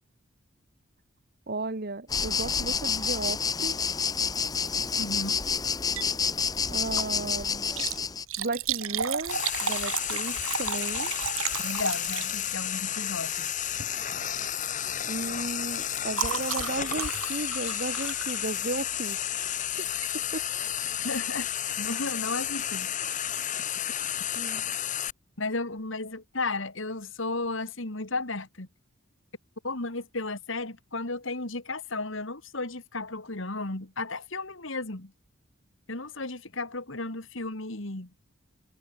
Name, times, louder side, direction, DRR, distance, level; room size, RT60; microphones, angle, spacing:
voice 1, 1.5-3.8 6.7-7.6 8.4-11.1 15.0-19.2 20.1-20.4 24.3-24.6, right 2 dB, 45° right, 1.3 m, -34 dB
sound 1, 2.1-8.2, left 6 dB, 15° left, 0.7 m, -28 dB
voice 2, 5.0-5.4 11.6-13.5 21.0-21.5 21.8-22.9 25.4-28.7 29.6-35.1 35.9-38.1, left 3 dB, 60° left, 2.5 m, -34 dB
Liquid, 5.8-6.2 6.6-6.7 7.6-12.7 13.7-14.0 14.3-14.6 14.8-18.9 19.9-20.1 20.7-20.8 20.9-21.0, right 8 dB, 75° right, 4.8 m, -34 dB
Frying (food), 9.3-25.1, left 10 dB, 35° left, 1.3 m, -32 dB
head